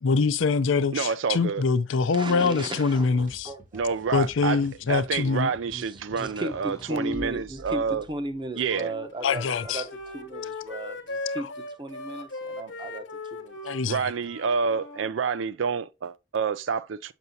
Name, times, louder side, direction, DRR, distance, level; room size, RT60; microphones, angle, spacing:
voice 1, 0.0-3.5 4.1-5.5 9.2-9.8 13.6-14.0, left 4 dB, 80° left, 0.5 m, -24 dB
voice 2, 0.9-1.6 3.7-4.6 4.9-8.0 8.6-8.9 13.8-17.1, right 6 dB, 75° right, 0.4 m, -28 dB
voice 3, 2.1-4.0 5.7-5.8 6.1-13.6, right 1 dB, 25° right, 0.8 m, -36 dB
sound 1, 3.0-8.6, right 1 dB, 40° right, 1.1 m, -51 dB
sound 2, 5.9-8.7 9.6-10.5, left 2 dB, 15° left, 0.4 m, -47 dB
Wind instrument woodwind instrument, 8.7-15.1, left 2 dB, 60° left, 0.9 m, -38 dB
6.7 x 6.0 x 2.7 m
head